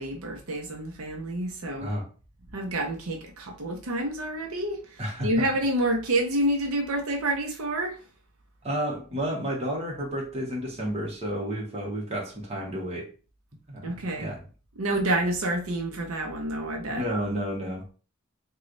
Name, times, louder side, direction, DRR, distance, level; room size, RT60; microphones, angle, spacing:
voice 1, 0.0-1.9 2.5-4.8 5.2-8.0 13.8-14.3 14.8-17.0, right 1 dB, 80° right, 0.7 m, -28 dB
voice 2, 5.0-5.5 8.6-13.1 13.7-13.9 14.2-14.4 16.9-17.9, equal, 30° right, 1.1 m, -31 dB
3.2 x 2.3 x 3.8 m
head